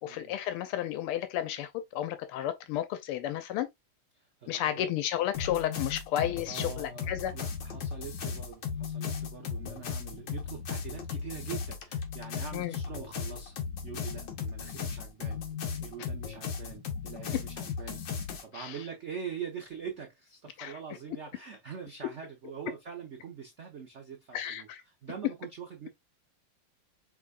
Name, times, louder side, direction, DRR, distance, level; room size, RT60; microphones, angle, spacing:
voice 1, 0.0-3.7 4.5-7.3 12.5-12.7 18.5-18.8 20.6-20.8 24.3-24.8, left 12 dB, 90° left, 1.6 m, -32 dB
voice 2, 4.1-4.9 6.4-15.4 15.8-25.9, right 7 dB, 75° right, 0.6 m, -43 dB
sound 1, 5.3-18.4, left 6 dB, 65° left, 1.6 m, -36 dB
4.9 x 3.5 x 2.3 m
omnidirectional pair, 2.3 m